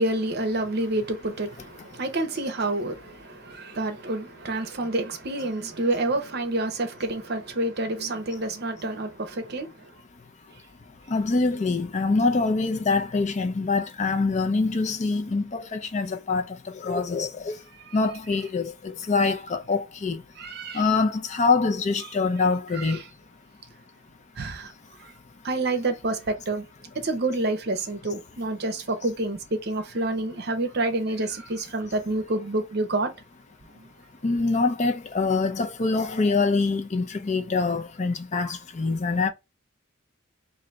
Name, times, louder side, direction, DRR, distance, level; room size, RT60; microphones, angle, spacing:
voice 1, 0.0-9.7 17.9-18.0 20.4-20.9 22.7-23.0 24.4-24.7 25.4-26.6 27.0-33.1, right 2 dB, 55° right, 0.8 m, -28 dB
voice 2, 11.1-16.4 16.8-17.5 17.9-20.2 20.7-23.0 34.2-39.3, left 4 dB, 35° left, 0.5 m, -24 dB
3.9 x 2.6 x 3.1 m
head